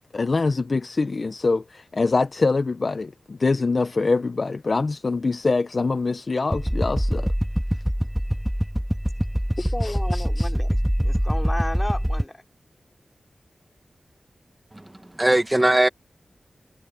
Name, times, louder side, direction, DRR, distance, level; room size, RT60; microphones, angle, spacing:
voice 1, 0.0-7.3 9.8-10.5, left 3 dB, 55° left, 0.7 m, -24 dB
sound 1, 6.5-12.2, equal, 5° right, 2.0 m, -24 dB
voice 2, 9.6-12.4, left 1 dB, 20° left, 3.3 m, -33 dB
voice 3, 14.7-15.9, right 1 dB, 20° right, 1.0 m, -20 dB
wide cardioid pair, 70°, 0 cm